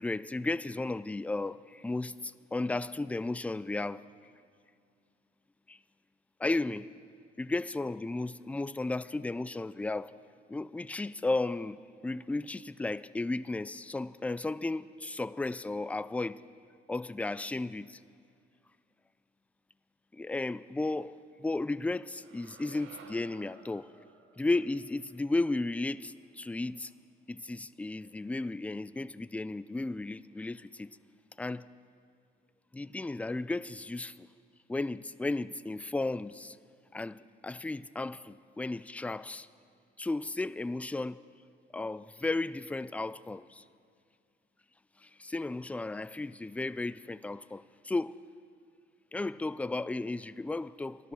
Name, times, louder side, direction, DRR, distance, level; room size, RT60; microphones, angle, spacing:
voice 1, 0.0-4.0 5.7-5.8 6.4-6.9 7.4-10.1 10.5-16.4 16.9-18.0 20.1-23.9 24.4-26.9 27.3-31.0 31.4-31.7 32.7-34.3 34.7-36.6 36.9-39.5 40.0-41.2 41.7-43.6 45.2-48.2 49.1-51.1, left 2 dB, 5° left, 0.3 m, -34 dB
sound 1, 22.2-26.4, right 5 dB, 80° right, 1.5 m, -56 dB
15.5 x 12.0 x 6.2 m
cardioid pair, 90°, 20 cm